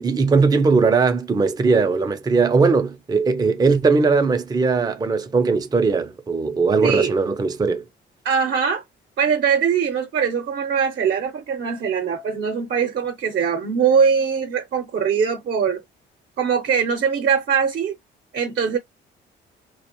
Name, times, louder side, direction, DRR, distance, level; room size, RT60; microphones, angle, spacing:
voice 1, 0.0-7.8, right 4 dB, 20° right, 0.5 m, -19 dB
voice 2, 6.8-7.1 8.2-8.8 9.2-15.8 16.4-17.9 18.3-18.8, right 6 dB, 55° right, 0.7 m, -21 dB
2.4 x 2.1 x 2.8 m
cardioid pair, 90°, 20 cm